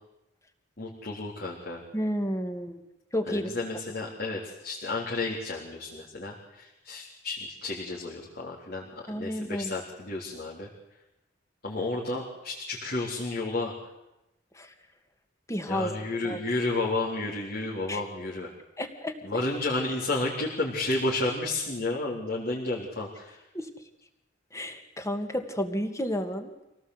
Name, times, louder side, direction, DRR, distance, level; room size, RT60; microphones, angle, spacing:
voice 1, 0.8-1.8 3.3-8.9 9.2-10.7 11.6-13.8 15.7-18.5 19.2-23.4, left 2 dB, 55° left, -4 dB, 3.7 m, -31 dB
voice 2, 1.9-2.8 3.1-3.5 9.1-9.7 14.6-14.7 15.5-15.9 16.2-16.4 17.9-18.0 18.8-19.2 23.5-23.7 24.5-26.5, equal, 15° left, 6 dB, 2.1 m, -31 dB
26.0 x 17.5 x 8.1 m, 0.93 s
head